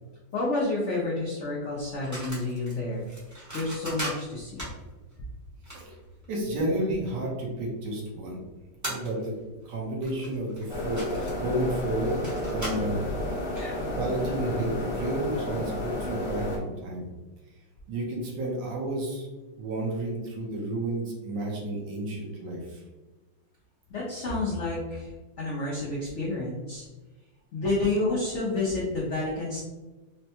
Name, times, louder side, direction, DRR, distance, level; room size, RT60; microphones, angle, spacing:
voice 1, 0.3-3.0 3.5-4.6 13.5-13.9 23.9-25.1 25.4-26.9 27.5-29.6, left 2 dB, 80° left, -5 dB, 0.6 m, -29 dB
sound 1, 1.8-6.9 7.4-7.5 8.4-8.5 8.8-9.5 9.8-13.0, right 1 dB, 15° right, 0.6 m, -39 dB
voice 2, 6.3-8.4 8.8-9.3 9.7-13.0 14.0-17.1 17.9-19.3 19.6-22.8, right 1 dB, 70° right, -2 dB, 1.5 m, -31 dB
sound 2, 10.7-16.6, left 1 dB, 50° left, 0.8 m, -31 dB
4.4 x 2.1 x 2.8 m, 1.2 s
omnidirectional pair, 2.1 m